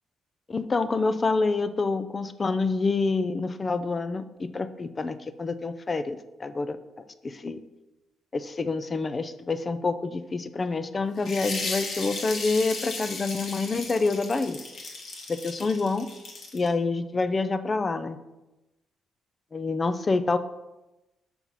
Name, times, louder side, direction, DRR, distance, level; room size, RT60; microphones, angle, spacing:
voice 1, 0.5-6.8 7.2-7.6 8.3-14.6 14.9-15.0 15.3-16.1 16.5-18.2 19.5-20.4, left 3 dB, 30° left, 11 dB, 0.5 m, -27 dB
sound 1, 11.2-16.7, left 3 dB, 60° left, 1.6 m, -35 dB
6.1 x 5.6 x 4.0 m, 1.0 s
cardioid pair, 90°, 0 cm